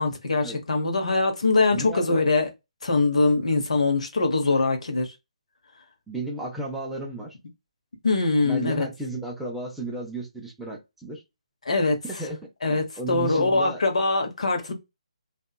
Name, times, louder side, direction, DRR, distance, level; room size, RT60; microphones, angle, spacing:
voice 1, 0.0-2.5 2.8-5.1 8.0-8.9 11.7-12.0 12.6-14.7, left 3 dB, 65° left, 0.8 m, -23 dB
voice 2, 1.7-2.1 6.1-7.3 8.4-11.2 12.0-12.4 12.7-13.8, right 2 dB, 5° right, 0.4 m, -33 dB
2.8 x 2.3 x 2.2 m
figure-of-eight pair, 145°, 4 cm